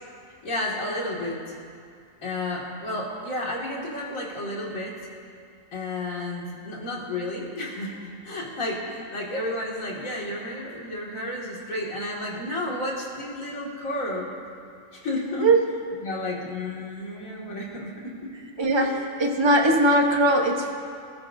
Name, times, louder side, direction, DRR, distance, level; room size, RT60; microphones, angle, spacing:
voice 1, 0.4-1.5 2.2-5.0 5.7-14.3 14.9-15.5 16.0-18.3 18.8-19.1, left 1 dB, 90° left, -4 dB, 2.7 m, -32 dB
voice 2, 18.6-20.7, right 1 dB, 20° right, 2 dB, 1.1 m, -20 dB
24.0 x 13.0 x 2.7 m, 2.3 s
omnidirectional pair, 1.4 m